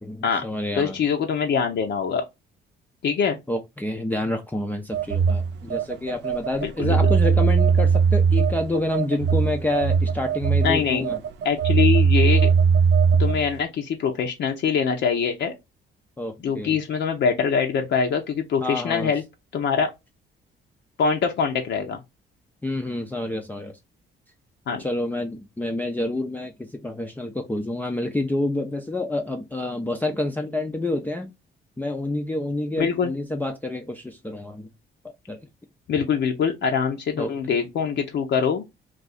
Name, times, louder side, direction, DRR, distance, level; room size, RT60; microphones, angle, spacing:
voice 1, 0.0-1.0 3.5-11.2 16.2-16.8 18.6-19.1 22.6-23.8 24.8-31.3 31.8-34.7 35.3-35.4 37.2-37.3, left 1 dB, 10° left, 0.4 m, -28 dB
voice 2, 0.7-2.3 3.0-3.4 6.6-7.0 10.6-11.1 11.4-12.5 13.2-15.5 16.4-19.2 19.5-19.9 21.0-22.0 24.7-24.8 32.8-33.1 35.9-38.6, left 6 dB, 65° left, 0.6 m, -23 dB
Telephone, 4.9-13.5, right 6 dB, 60° right, 0.4 m, -20 dB
2.4 x 2.3 x 4.0 m
cardioid pair, 90°, 20 cm